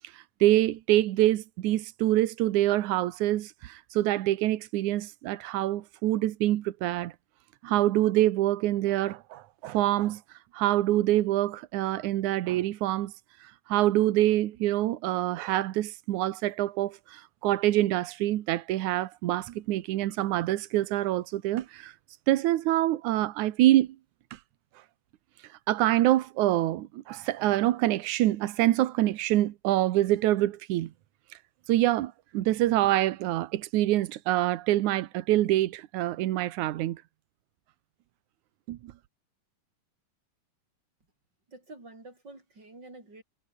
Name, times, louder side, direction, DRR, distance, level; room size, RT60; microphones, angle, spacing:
voice 1, 0.1-7.1 7.6-10.2 10.5-13.1 13.4-21.9 22.3-24.0 24.3-24.4 25.7-30.9 31.7-37.0 38.7-38.9, right 14 dB, 80° right, 1.7 m, -26 dB
voice 2, 41.5-43.2, right 2 dB, 25° right, 8.2 m, -48 dB
omnidirectional pair, 4.8 m